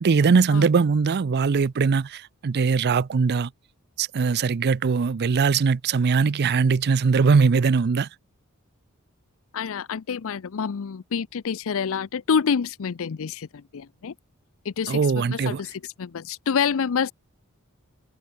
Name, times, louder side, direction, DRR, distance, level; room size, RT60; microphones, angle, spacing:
voice 1, 0.0-3.5 4.0-8.1 14.9-15.6, right 5 dB, 50° right, 0.4 m, -21 dB
voice 2, 9.5-14.1 14.6-17.1, left 6 dB, 65° left, 0.5 m, -27 dB
head